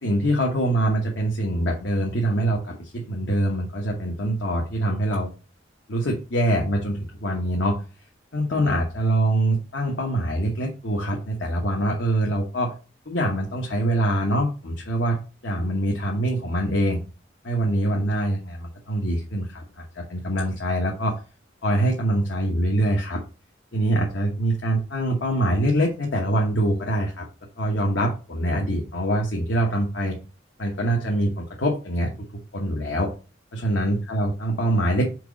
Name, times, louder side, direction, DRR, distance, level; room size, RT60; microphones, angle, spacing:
voice 1, 0.0-5.3 5.9-7.8 8.3-12.7 13.1-15.2 15.4-17.0 17.4-21.2 21.6-23.2 23.7-27.3 27.6-30.2 30.6-32.1 32.5-33.1 33.5-35.1, right 1 dB, 75° left, 0 dB, 1.1 m, -24 dB
4.7 x 4.5 x 5.1 m, 0.34 s
head